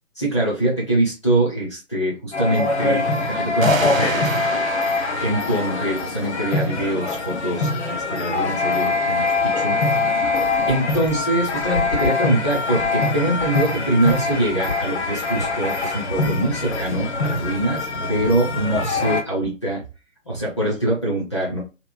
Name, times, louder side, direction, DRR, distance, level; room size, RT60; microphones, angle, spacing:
voice 1, 0.1-4.3 5.2-19.8 20.3-21.6, right 1 dB, 20° left, -6 dB, 0.6 m, -24 dB
sound 1, 2.3-19.2, left 3 dB, 55° left, 0.8 m, -23 dB
sound 2, 3.6-7.0, right 5 dB, 80° right, 0.6 m, -32 dB
sound 3, 10.3-12.2 12.5-13.0 13.4-13.6 14.0-14.3 14.7-15.1 15.4-15.8 16.2-16.4 16.6-16.7 16.9-17.3 17.8-18.0 18.2-18.3 18.6-19.0 19.4-19.5, left 3 dB, 85° left, 1.4 m, -34 dB
2.9 x 2.3 x 2.4 m, 0.29 s
figure-of-eight pair, 145°, 40 cm